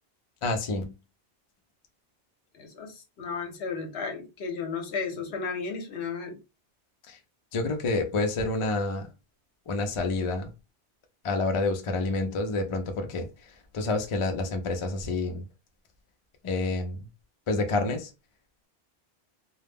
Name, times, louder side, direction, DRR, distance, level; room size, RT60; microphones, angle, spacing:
voice 1, 0.4-0.9 7.1-7.2 7.5-9.1 9.7-10.5 11.2-13.3 13.7-15.5 16.4-17.0 17.5-18.1, left 3 dB, 55° left, 0.3 m, -28 dB
voice 2, 2.5-6.4, left 5 dB, 70° left, 0.9 m, -34 dB
2.2 x 2.0 x 3.3 m
omnidirectional pair, 1.1 m